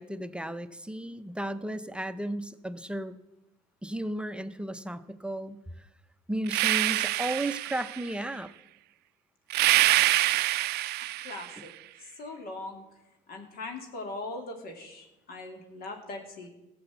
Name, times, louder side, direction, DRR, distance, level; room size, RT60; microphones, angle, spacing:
voice 1, 0.0-3.2 3.8-5.9 6.3-8.5, right 1 dB, 5° right, 11 dB, 0.6 m, -34 dB
sound 1, 6.5-8.1 9.5-11.6, right 17 dB, 75° right, 0.4 m, -25 dB
voice 2, 9.8-10.1 11.0-11.7 12.0-12.8 13.3-16.5, left 2 dB, 65° left, 3 dB, 2.3 m, -41 dB
14.0 x 7.0 x 8.1 m, 0.95 s
cardioid pair, 110°, 17 cm